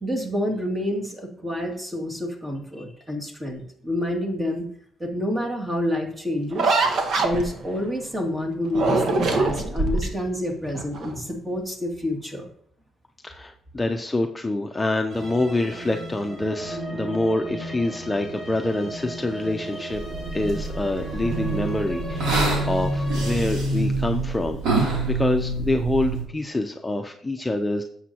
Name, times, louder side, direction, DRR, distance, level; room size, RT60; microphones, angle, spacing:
voice 1, 0.0-4.7 5.0-6.8 7.2-12.5, left 1 dB, 20° right, 1 dB, 2.4 m, -28 dB
sound 1, 6.5-7.8 8.7-10.2 10.7-11.2, right 3 dB, 65° right, 1.4 m, -23 dB
voice 2, 13.2-20.0 20.3-27.8, left 2 dB, 15° left, 4 dB, 0.7 m, -26 dB
sound 2, 15.1-23.3, right 1 dB, 40° right, 3.8 m, -36 dB
sound 3, 19.9-26.2, right 2 dB, 85° right, 3.1 m, -26 dB
11.0 x 7.2 x 3.0 m, 0.63 s
cardioid pair, 90°, 0 cm